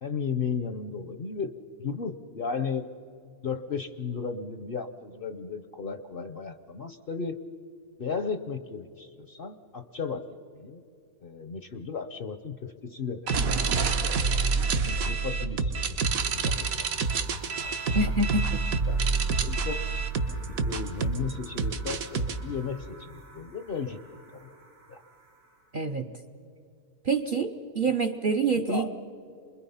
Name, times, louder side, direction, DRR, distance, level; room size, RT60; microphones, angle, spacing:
voice 1, 0.0-2.9 3.4-7.4 8.0-10.8 11.2-13.4 14.6-15.7 16.3-17.3 17.6-17.7 18.9-19.0 19.4-19.8 20.5-24.0 24.3-24.5 24.9-25.0 28.7-28.9, left 5 dB, 50° left, 9 dB, 0.7 m, -35 dB
sound 1, 13.3-22.4, right 4 dB, 70° right, 1.5 m, -27 dB
sound 2, 16.1-25.8, right 3 dB, 85° right, 2.8 m, -50 dB
voice 2, 17.9-18.6 25.7-26.1 27.0-28.9, right 3 dB, 45° right, 5 dB, 0.7 m, -27 dB
28.0 x 22.0 x 5.6 m, 2.5 s
omnidirectional pair, 1.6 m